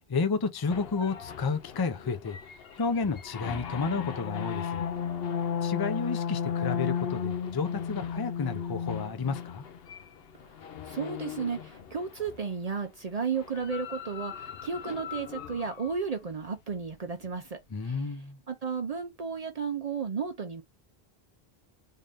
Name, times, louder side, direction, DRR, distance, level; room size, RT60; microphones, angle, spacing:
voice 1, 0.1-2.4 2.7-4.8 5.6-9.7 17.7-18.4, left 4 dB, 30° left, 0.5 m, -31 dB
sound 1, 0.7-12.5 13.3-16.0, left 7 dB, 70° left, 0.9 m, -35 dB
voice 2, 10.9-18.0 18.5-20.6, right 5 dB, 45° right, 0.6 m, -33 dB
3.7 x 2.6 x 3.3 m
omnidirectional pair, 1.0 m